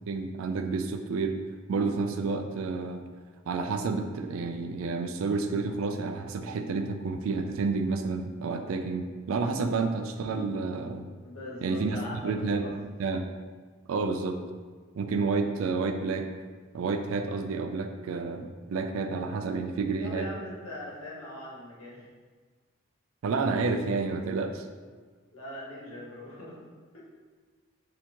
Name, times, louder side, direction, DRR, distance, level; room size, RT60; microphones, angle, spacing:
voice 1, 0.1-1.4 1.7-3.0 3.5-11.0 11.6-12.0 12.2-12.7 13.0-13.3 13.9-14.4 15.0-16.3 16.7-20.3 23.2-24.7, right 4 dB, 80° right, 7 dB, 0.4 m, -30 dB
voice 2, 11.2-12.7 19.6-22.1 25.3-26.6 26.9-27.0, left 1 dB, 85° left, -6 dB, 1.2 m, -41 dB
4.2 x 2.8 x 2.9 m, 1.5 s
head